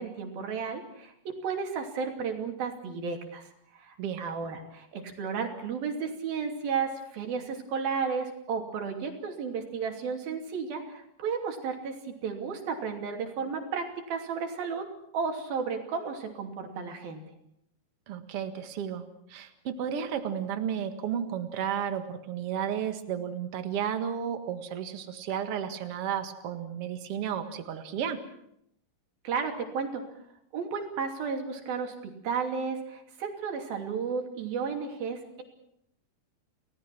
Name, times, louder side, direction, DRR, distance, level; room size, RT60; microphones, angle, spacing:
voice 1, 0.0-14.8 15.1-17.2 29.2-30.0 30.5-35.4, right 5 dB, 65° right, 3 dB, 4.6 m, -33 dB
voice 2, 18.1-28.2, right 8 dB, 45° right, 7 dB, 2.3 m, -33 dB
30.0 x 19.0 x 6.1 m, 0.75 s
omnidirectional pair, 4.5 m